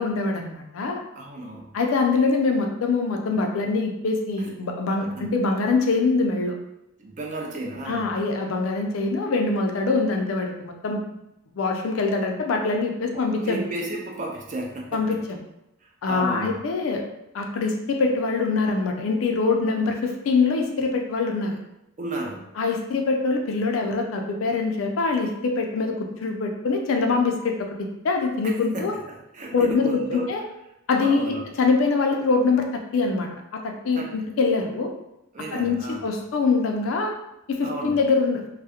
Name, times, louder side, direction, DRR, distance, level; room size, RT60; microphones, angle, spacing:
voice 1, 0.0-1.0 1.7-6.6 7.9-11.0 11.5-13.6 14.9-15.4 16.0-17.0 17.3-21.6 22.6-28.9 29.5-30.4 30.9-34.9 35.5-37.1 37.5-38.4, left 4 dB, 75° left, 3 dB, 0.4 m, -24 dB
voice 2, 1.2-1.7 5.2-5.3 7.0-8.1 13.1-15.2 15.8-16.6 22.0-22.5 28.7-30.3 31.0-31.5 33.9-34.1 35.3-36.0 37.6-38.0, right 1 dB, 35° right, 0 dB, 0.4 m, -33 dB
2.3 x 2.0 x 2.7 m, 0.88 s
head